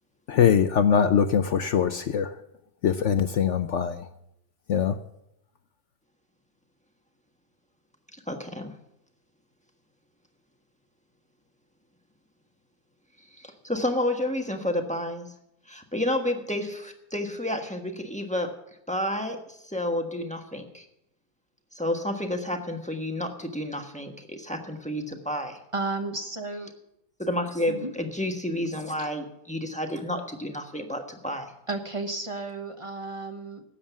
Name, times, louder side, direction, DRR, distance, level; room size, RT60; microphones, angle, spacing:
voice 1, 0.3-2.3 2.8-4.0 4.7-4.9, left 7 dB, 65° left, 10 dB, 0.8 m, -22 dB
voice 2, 8.3-8.7 13.4-15.3 15.7-18.5 18.9-20.9 21.7-25.6 27.2-31.5, left 1 dB, 5° left, 4 dB, 1.2 m, -30 dB
voice 3, 25.7-26.7 27.7-27.9 29.0-29.1 31.7-33.6, right 3 dB, 25° right, 5 dB, 0.9 m, -33 dB
13.0 x 8.8 x 7.2 m, 0.79 s
omnidirectional pair, 1.8 m